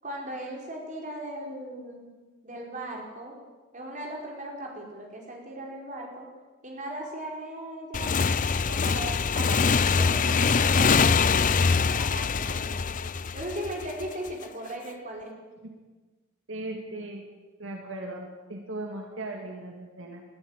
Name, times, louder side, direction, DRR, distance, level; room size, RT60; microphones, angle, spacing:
voice 1, 0.0-2.1 2.4-3.4 3.7-6.3 6.6-8.2 8.6-12.9 13.3-15.3, right 1 dB, 40° right, 0 dB, 5.0 m, -38 dB
Motorcycle / Engine, 7.9-14.3, left 5 dB, 40° left, 0.6 m, -24 dB
voice 2, 16.5-17.3 17.6-20.2, right 2 dB, 70° right, 1 dB, 2.5 m, -38 dB
21.5 x 14.0 x 9.2 m, 1.3 s
head